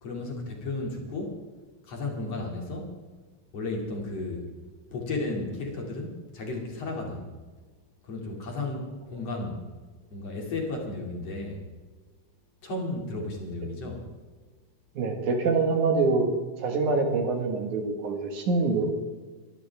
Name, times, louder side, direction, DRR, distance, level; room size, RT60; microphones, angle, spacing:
voice 1, 0.0-1.4 1.8-2.9 3.5-4.5 4.9-7.3 8.0-9.6 10.1-11.6 12.6-14.1, left 2 dB, 50° left, 0 dB, 3.5 m, -33 dB
voice 2, 15.0-16.3 16.6-18.9, right 3 dB, 65° right, 4 dB, 3.0 m, -25 dB
24.0 x 13.0 x 3.5 m, 1.3 s
omnidirectional pair, 3.9 m